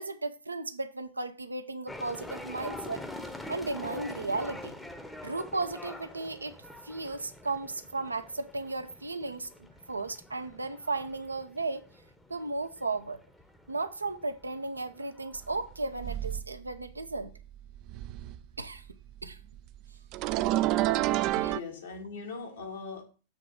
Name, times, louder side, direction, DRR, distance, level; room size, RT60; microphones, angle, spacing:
voice 1, 0.0-3.0 3.5-4.7 5.2-6.6 6.8-9.5 9.9-11.9 12.3-13.2 13.7-17.3 18.6-18.8 19.2-19.4 21.4-21.5, right 3 dB, 80° right, 0.6 m, -35 dB
sound 1, 1.9-16.2, left 1 dB, 5° left, 0.9 m, -45 dB
sound 2, 15.5-15.6 16.0-16.8 17.2-18.5 18.8-21.6, right 15 dB, 40° right, 0.4 m, -29 dB
voice 2, 21.2-23.0, left 4 dB, 65° left, 2.0 m, -41 dB
7.3 x 3.8 x 6.4 m
figure-of-eight pair, 90°, 0 cm